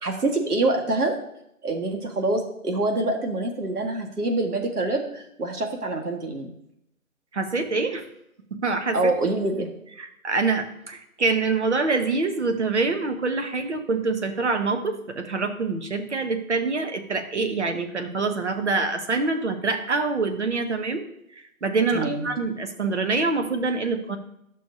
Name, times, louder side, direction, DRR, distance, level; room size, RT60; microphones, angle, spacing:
voice 1, 0.0-1.2 1.6-6.5 8.9-9.7 21.9-22.3, right 2 dB, 85° right, 3 dB, 1.8 m, -25 dB
voice 2, 7.3-8.0 8.5-9.0 10.0-21.0 21.6-24.2, right 3 dB, 50° right, 7 dB, 1.0 m, -25 dB
11.0 x 6.5 x 2.7 m, 0.78 s
hypercardioid pair, 175°, 44 cm